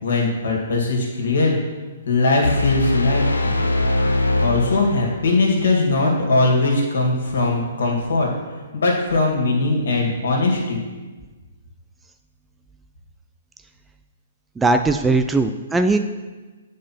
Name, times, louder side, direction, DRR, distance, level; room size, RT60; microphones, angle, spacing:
voice 1, 0.0-1.6 2.1-3.6 4.4-8.3 8.7-10.8, left 2 dB, 70° left, -1 dB, 2.1 m, -20 dB
sound 1, 2.4-5.4, left 2 dB, 90° left, 0.7 m, -22 dB
voice 2, 14.6-16.0, right 3 dB, 10° right, 7 dB, 0.3 m, -19 dB
8.6 x 5.0 x 4.4 m, 1.3 s
figure-of-eight pair, 125°, 0 cm